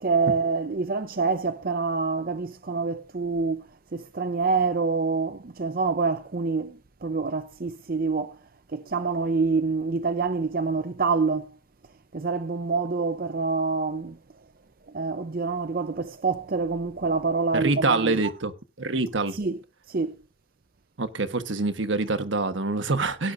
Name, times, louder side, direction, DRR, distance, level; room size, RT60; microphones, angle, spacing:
voice 1, 0.0-8.4 8.7-11.5 12.1-14.2 14.9-18.2 19.3-19.6 19.9-20.2, right 4 dB, 50° right, 0.6 m, -26 dB
voice 2, 17.5-19.4 21.0-23.3, right 3 dB, 85° right, 1.3 m, -26 dB
17.5 x 9.8 x 2.6 m
head